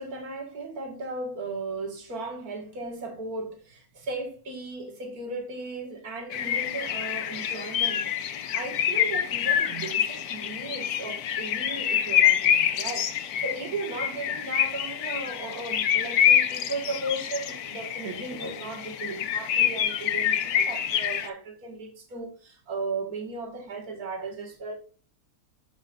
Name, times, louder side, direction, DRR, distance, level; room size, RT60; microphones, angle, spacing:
voice 1, 0.0-24.8, right 3 dB, 85° right, 2.2 m, -36 dB
sound 1, 6.3-21.3, left 9 dB, 85° left, 1.3 m, -26 dB
11.5 x 5.2 x 2.5 m
omnidirectional pair, 1.6 m